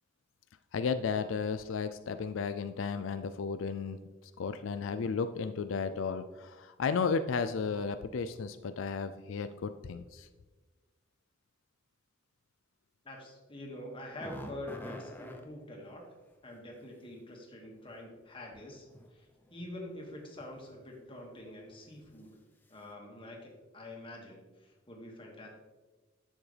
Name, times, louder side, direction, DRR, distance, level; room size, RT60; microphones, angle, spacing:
voice 1, 0.7-10.3, left 5 dB, 85° left, 10 dB, 0.4 m, -34 dB
voice 2, 13.0-16.0 16.4-19.2 19.5-22.4 22.7-25.5, left 1 dB, 25° left, -1 dB, 1.9 m, -46 dB
sound 1, 14.1-15.4 17.6-17.7 18.7-19.1 19.4-19.6 20.4-20.7 21.1-21.2 21.6-21.7, left 1 dB, 10° left, 0.8 m, -45 dB
11.0 x 7.2 x 3.4 m, 1.2 s
head